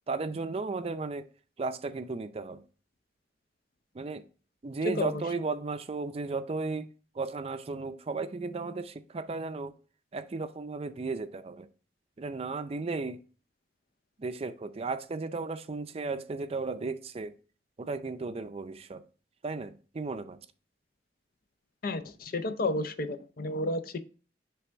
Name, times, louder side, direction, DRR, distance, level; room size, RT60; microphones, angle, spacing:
voice 1, 0.1-1.3 1.6-2.6 3.9-4.2 4.6-6.9 7.1-9.7 10.1-11.7 12.2-13.2 14.2-17.4 17.8-19.0 19.4-20.4, right 3 dB, 35° right, 0.4 m, -35 dB
voice 2, 4.9-5.2 21.8-24.0, left 2 dB, 55° left, 0.5 m, -31 dB
8.0 x 3.4 x 3.4 m
head